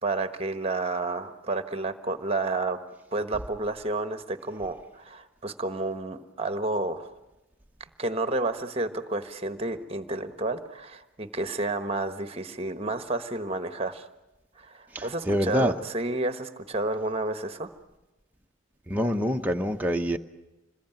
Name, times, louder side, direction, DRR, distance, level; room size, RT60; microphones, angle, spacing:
voice 1, 0.0-2.8 3.1-7.1 8.0-14.1 14.6-17.7, right 2 dB, 25° right, 1.2 m, -30 dB
voice 2, 14.9-15.7 18.9-20.2, equal, 10° right, 0.9 m, -26 dB
26.5 x 21.0 x 9.2 m
head